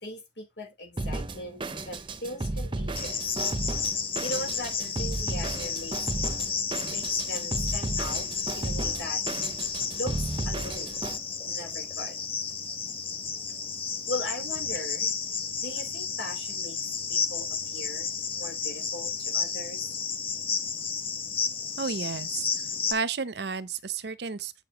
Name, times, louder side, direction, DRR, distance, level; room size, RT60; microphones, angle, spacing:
voice 1, 0.0-3.2 4.2-6.1 6.9-9.2 10.0-11.0 11.4-12.2 14.1-15.1 15.6-16.8 17.1-20.0, left 1 dB, 70° left, 3.4 m, -39 dB
Drum kit, 1.0-11.2, right 2 dB, 25° right, 0.8 m, -34 dB
Cricket, 3.0-22.9, left 5 dB, 30° left, 1.1 m, -32 dB
voice 2, 21.8-22.5 22.9-24.6, right 5 dB, 60° right, 0.7 m, -32 dB
7.8 x 6.9 x 2.8 m
head